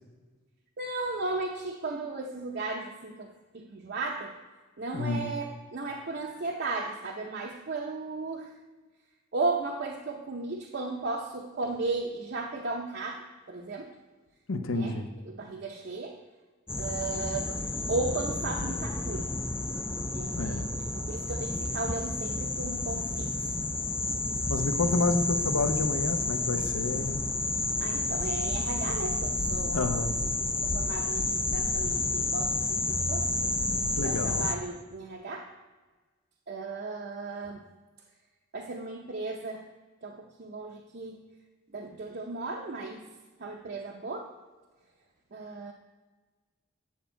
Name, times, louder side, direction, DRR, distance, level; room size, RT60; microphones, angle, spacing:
voice 1, 0.8-4.4 4.8-8.6 9.3-14.0 14.7-15.0 15.3-16.2 16.8-17.6 17.9-19.3 20.1-20.3 20.9-23.3 27.8-29.9 30.6-33.3 34.0-35.5 36.5-37.6 38.5-39.7 40.0-41.3 41.7-43.1 43.4-44.3 45.3-45.7, right 3 dB, 50° right, 1 dB, 0.6 m, -35 dB
voice 2, 4.9-5.3 14.5-15.1 20.3-20.7 24.5-27.2 29.7-30.2 34.0-34.5, left 3 dB, 85° left, 7 dB, 0.8 m, -29 dB
sound 1, 16.7-34.6, left 2 dB, 10° left, 0.4 m, -30 dB
9.3 x 7.1 x 4.5 m, 1.3 s
head